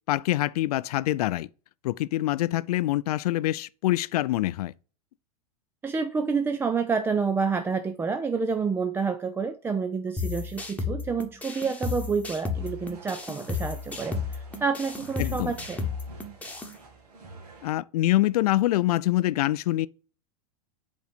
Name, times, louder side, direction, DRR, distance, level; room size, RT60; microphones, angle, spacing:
voice 1, 0.1-1.5 1.8-4.7 15.2-15.5 17.6-19.9, left 16 dB, 75° left, 0.4 m, -25 dB
voice 2, 5.8-15.8, right 5 dB, 10° right, 0.3 m, -28 dB
sound 1, 10.2-16.7, left 4 dB, 5° left, 1.2 m, -33 dB
sound 2, 12.5-17.7, right 3 dB, 85° right, 2.3 m, -49 dB
5.2 x 3.9 x 5.0 m
hypercardioid pair, 115°, 20 cm